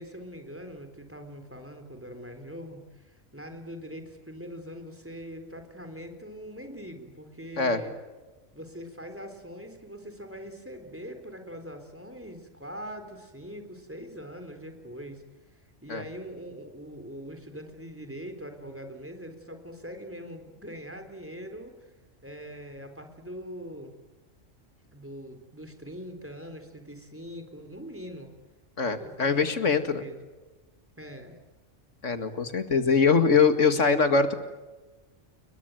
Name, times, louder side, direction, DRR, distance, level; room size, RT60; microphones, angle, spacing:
voice 1, 0.0-7.9 8.5-15.2 15.8-21.9 22.2-23.9 24.9-28.3 29.0-30.2 31.0-31.3, equal, 10° right, 5 dB, 3.7 m, -42 dB
voice 2, 28.8-30.0 32.0-34.3, left 5 dB, 70° left, 8 dB, 2.4 m, -23 dB
29.5 x 22.0 x 9.2 m, 1.2 s
omnidirectional pair, 1.3 m